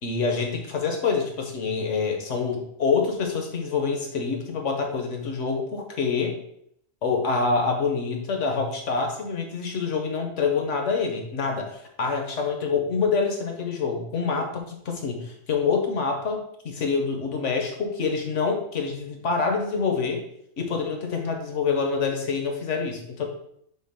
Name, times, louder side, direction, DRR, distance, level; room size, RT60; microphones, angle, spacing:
voice 1, 0.0-6.4 7.0-20.2 20.6-23.3, left 5 dB, 65° left, 3 dB, 1.4 m, -26 dB
4.5 x 4.0 x 5.5 m, 0.71 s
omnidirectional pair, 1.3 m